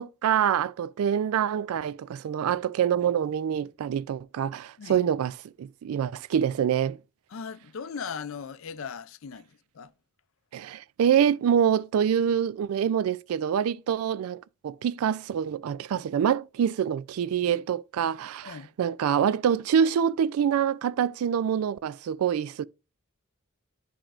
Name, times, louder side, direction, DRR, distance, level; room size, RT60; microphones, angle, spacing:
voice 1, 0.0-5.3 5.6-7.0 10.5-22.7, right 8 dB, 85° right, 0.3 m, -26 dB
voice 2, 7.3-9.9 18.4-18.7, left 6 dB, 70° left, 0.4 m, -38 dB
9.9 x 4.4 x 2.5 m
head